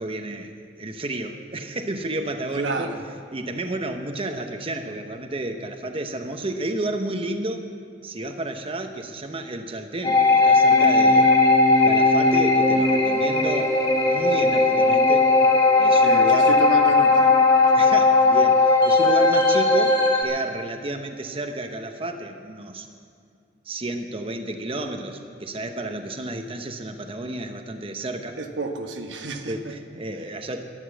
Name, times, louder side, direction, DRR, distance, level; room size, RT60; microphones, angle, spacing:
voice 1, 0.0-2.9 3.3-7.7 8.0-11.3 11.8-13.8 14.1-15.3 15.8-16.5 17.7-22.9 23.6-28.4 29.5-30.6, right 1 dB, 30° right, 5 dB, 0.9 m, -31 dB
voice 2, 2.5-3.0 15.9-17.3 28.4-29.8, right 3 dB, 85° right, 5 dB, 1.2 m, -30 dB
sound 1, 10.0-20.2, left 3 dB, 25° left, 1.6 m, -17 dB
12.0 x 11.0 x 8.2 m, 2.4 s
head